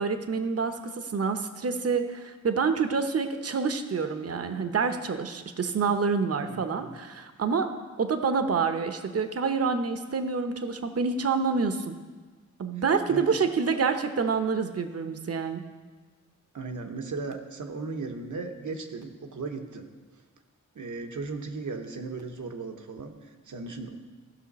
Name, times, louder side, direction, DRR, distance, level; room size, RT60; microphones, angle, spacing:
voice 1, 0.0-7.7 8.0-12.0 12.6-15.6, right 5 dB, 50° right, 8 dB, 0.8 m, -27 dB
voice 2, 6.5-7.0 13.1-13.5 16.5-19.9 20.7-23.9, right 3 dB, 75° right, 5 dB, 1.0 m, -36 dB
15.5 x 5.9 x 4.1 m, 1.3 s
wide cardioid pair, 75°, 30 cm